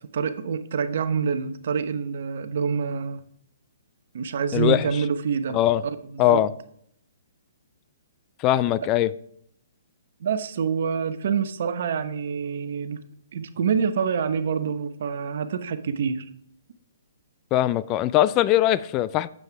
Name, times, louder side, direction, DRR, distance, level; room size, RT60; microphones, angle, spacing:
voice 1, 0.1-3.2 4.1-5.6 6.1-6.4 10.2-13.0 13.3-16.3, right 6 dB, 60° right, 1.0 m, -26 dB
voice 2, 4.5-4.8 5.5-5.8 6.2-6.5 8.4-9.1 17.5-19.3, left 13 dB, 30° left, 0.3 m, -21 dB
9.3 x 7.7 x 3.4 m
hypercardioid pair, 140°, 0 cm